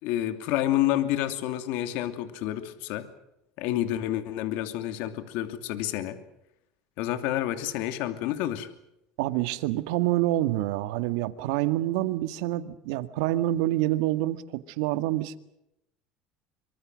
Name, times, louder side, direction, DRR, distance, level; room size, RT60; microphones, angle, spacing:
voice 1, 0.0-3.1 3.6-6.2 7.0-8.7, left 13 dB, 70° left, 9 dB, 2.8 m, -29 dB
voice 2, 9.2-15.4, right 15 dB, 85° right, 11 dB, 1.8 m, -27 dB
26.0 x 25.5 x 6.4 m, 0.82 s
cardioid pair, 130°, 3 cm